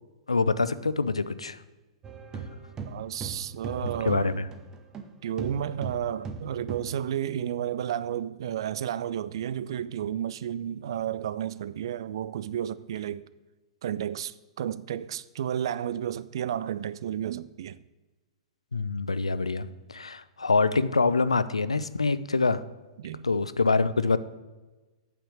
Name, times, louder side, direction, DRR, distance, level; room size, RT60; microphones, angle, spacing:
voice 1, 0.3-1.6 4.1-4.5 18.7-22.6 23.2-24.2, left 4 dB, 75° left, 0.5 m, -25 dB
sound 1, 2.0-5.1 5.4-7.0, right 4 dB, 20° right, 0.8 m, -38 dB
voice 2, 2.9-4.3 5.2-13.2 13.8-17.8 23.0-23.3, right 10 dB, 50° right, 0.4 m, -32 dB
8.7 x 5.8 x 6.3 m
figure-of-eight pair, 105°, 3 cm